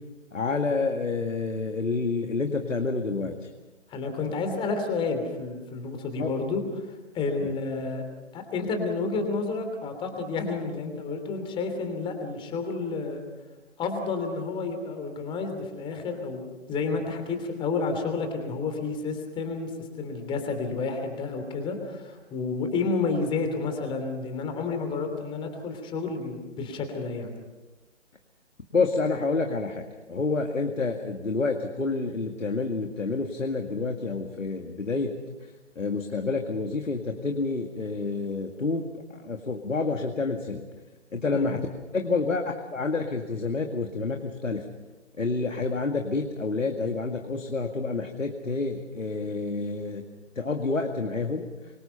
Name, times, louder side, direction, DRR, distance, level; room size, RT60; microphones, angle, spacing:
voice 1, 0.3-3.4 6.2-6.3 7.4-7.5 28.7-29.8 30.1-35.1 35.8-38.8 39.1-40.6 41.1-41.6 41.9-44.6 45.2-50.0 50.4-51.5, left 3 dB, 85° left, 4 dB, 2.1 m, -28 dB
voice 2, 3.9-6.6 7.1-8.0 8.3-13.2 13.8-19.7 20.0-27.3 41.3-41.5, left 4 dB, 15° left, 6 dB, 3.0 m, -30 dB
26.0 x 23.5 x 5.7 m, 1.2 s
figure-of-eight pair, 135°, 37 cm